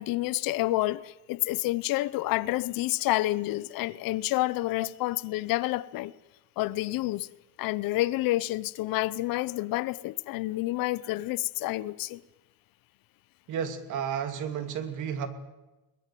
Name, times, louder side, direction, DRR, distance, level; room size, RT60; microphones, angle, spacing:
voice 1, 0.0-6.1 6.6-7.3 7.6-12.2, left 17 dB, 70° left, 0.9 m, -29 dB
voice 2, 13.5-15.3, right 8 dB, 55° right, 2.7 m, -32 dB
22.0 x 20.0 x 9.3 m
cardioid pair, 160°, 36 cm